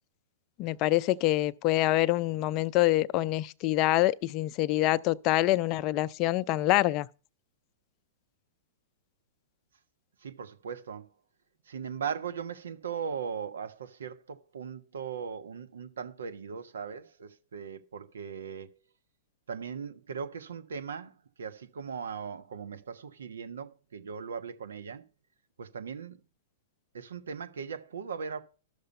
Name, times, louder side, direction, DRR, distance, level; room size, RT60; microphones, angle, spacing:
voice 1, 0.6-7.1, left 16 dB, 40° left, 0.5 m, -26 dB
voice 2, 10.2-11.1 11.7-18.7 19.5-21.1 21.4-25.0 25.6-26.2 26.9-28.4, right 6 dB, 80° right, 1.2 m, -38 dB
12.5 x 6.7 x 5.4 m
hypercardioid pair, 120°, 0 cm